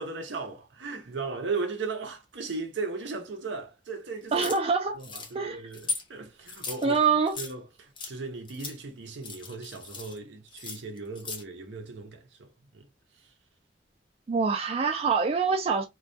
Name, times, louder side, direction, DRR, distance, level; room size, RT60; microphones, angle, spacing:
voice 1, 0.0-4.5 4.9-7.0 7.4-12.9, right 4 dB, 75° right, 0.6 m, -37 dB
sound 1, 4.3-4.6 5.0-5.3 5.7-6.0 6.5-7.5 8.0-8.1 8.5-8.8 9.1-10.2 10.5-11.4, left 4 dB, 25° left, 0.5 m, -37 dB
voice 2, 4.3-4.9 5.3-5.7 6.8-7.4 14.3-15.8, right 5 dB, 35° right, 0.3 m, -25 dB
2.2 x 2.2 x 2.5 m
head